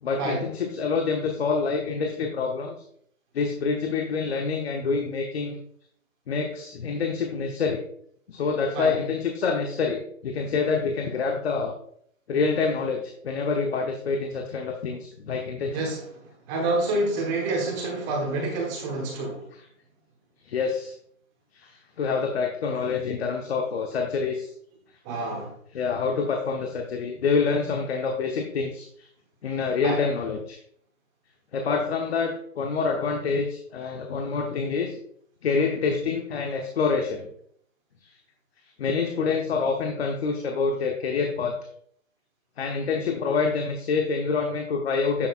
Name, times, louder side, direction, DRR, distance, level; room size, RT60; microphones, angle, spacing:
voice 1, 0.0-2.7 3.3-5.6 6.3-7.8 8.3-11.7 12.3-15.8 20.4-20.9 21.5-24.5 25.7-29.1 29.4-30.6 31.5-35.0 35.4-37.3 38.0-38.1 38.8-41.5 42.6-45.3, left 5 dB, 50° left, 3 dB, 1.2 m, -27 dB
voice 2, 15.7-16.0 16.5-19.4 22.8-22.9 25.0-25.5 29.8-30.0, right 2 dB, 15° right, 0 dB, 1.1 m, -27 dB
9.8 x 6.6 x 2.5 m, 0.66 s
hypercardioid pair, 155°, 40 cm